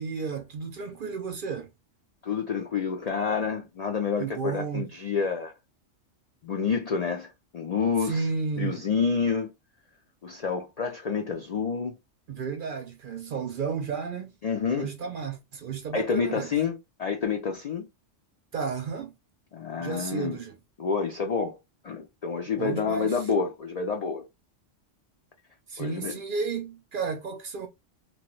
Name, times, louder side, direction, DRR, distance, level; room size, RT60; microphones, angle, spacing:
voice 1, 0.0-1.7 4.2-4.9 8.0-8.8 12.3-14.3 14.7-16.5 18.5-19.1 19.8-20.6 22.5-23.2 25.7-27.7, right 5 dB, 60° right, 0.6 m, -32 dB
voice 2, 2.2-5.5 6.4-8.3 8.6-9.5 10.2-12.0 14.4-14.9 15.9-17.9 19.5-20.4 20.8-21.6 21.8-24.2 25.8-26.1, left 5 dB, 80° left, 0.3 m, -28 dB
2.9 x 2.2 x 2.9 m
omnidirectional pair, 1.3 m